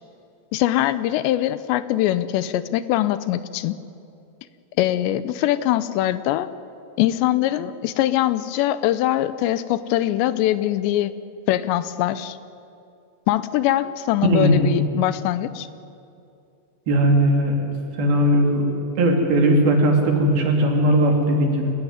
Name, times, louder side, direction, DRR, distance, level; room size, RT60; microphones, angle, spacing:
voice 1, 0.5-3.8 4.8-6.5 7.0-11.1 11.5-12.4 13.3-15.7, left 13 dB, 80° left, 14 dB, 2.9 m, -22 dB
voice 2, 14.3-14.7 16.9-17.7 18.0-18.6 19.0-21.7, right 1 dB, 60° right, 2 dB, 4.4 m, -18 dB
28.0 x 16.5 x 9.6 m, 2.6 s
omnidirectional pair, 5.2 m